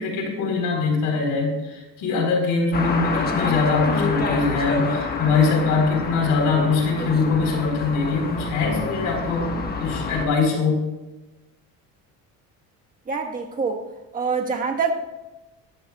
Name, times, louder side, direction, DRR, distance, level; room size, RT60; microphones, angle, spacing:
voice 1, 0.0-10.9, left 4 dB, 65° left, 1 dB, 4.2 m, -22 dB
sound 1, 2.7-10.3, left 4 dB, 25° left, 1.4 m, -28 dB
voice 2, 13.1-13.8 14.1-14.9, right 5 dB, 25° right, 2 dB, 1.4 m, -25 dB
17.5 x 14.0 x 2.4 m, 1.1 s
cardioid pair, 140°, 35 cm